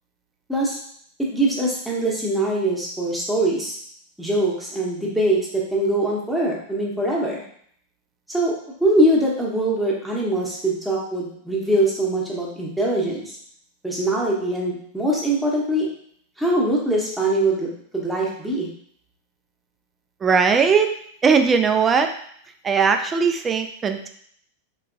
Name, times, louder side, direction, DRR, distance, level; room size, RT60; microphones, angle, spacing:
voice 1, 1.3-3.8 4.2-7.4 8.3-8.5 8.8-13.3 13.8-15.9 16.4-18.7, right 1 dB, ahead, -5 dB, 0.9 m, -22 dB
voice 2, 20.2-21.0 21.2-22.1 22.6-24.1, right 5 dB, 20° right, 6 dB, 0.3 m, -19 dB
3.3 x 2.9 x 2.5 m, 0.63 s
figure-of-eight pair, 90°, 0 cm